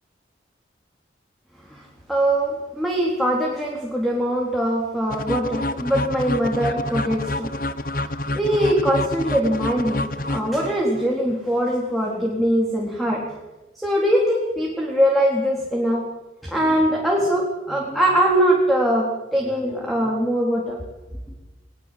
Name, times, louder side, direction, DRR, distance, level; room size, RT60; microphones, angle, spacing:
voice 1, 1.7-7.5 8.0-13.2 13.8-16.0 16.4-20.8, equal, ahead, -2 dB, 4.0 m, -22 dB
sound 1, 5.1-11.1, left 1 dB, 50° left, 1.1 m, -28 dB
22.0 x 21.0 x 7.8 m, 1.1 s
head